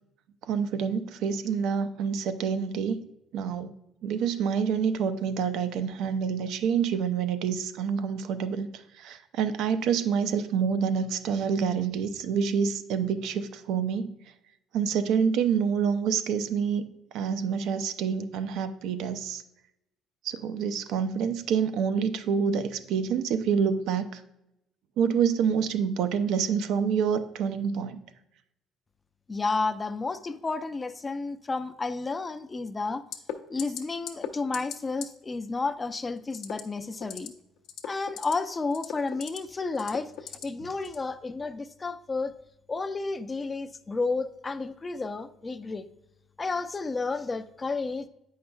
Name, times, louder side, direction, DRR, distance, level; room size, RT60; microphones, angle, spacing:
voice 1, 0.5-3.0 3.3-3.7 4.0-8.7 9.0-14.1 14.7-16.8 17.1-19.4 20.2-24.2 25.0-28.0, right 7 dB, 75° right, 11 dB, 0.5 m, -27 dB
voice 2, 29.3-33.0 33.5-37.3 37.8-42.3 42.7-45.9 46.4-48.1, left 3 dB, 25° left, 11 dB, 0.4 m, -31 dB
sound 1, 33.1-33.3 33.6-33.8 34.1-34.3 34.5-34.8 35.0-35.1 36.3-36.6 37.0-37.3 37.6-38.3 38.7-39.4 39.8-40.4 40.8-41.0, left 10 dB, 80° left, 0.6 m, -36 dB
8.5 x 5.6 x 2.3 m, 0.85 s
cardioid pair, 100°, 0 cm